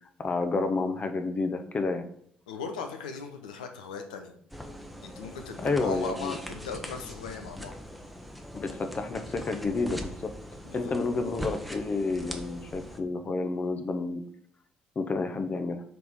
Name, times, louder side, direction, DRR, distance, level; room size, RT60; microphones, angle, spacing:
voice 1, 0.2-2.0 5.6-6.4 8.5-10.3 10.7-14.2 15.0-15.8, left 3 dB, 35° left, 7 dB, 0.8 m, -30 dB
voice 2, 2.5-4.3 5.0-7.7 10.6-11.0, left 5 dB, 80° left, 5 dB, 0.7 m, -38 dB
sound 1, 4.5-13.0, equal, ahead, 0.9 m, -42 dB
6.0 x 3.5 x 4.7 m, 0.65 s
figure-of-eight pair, 50°, 4 cm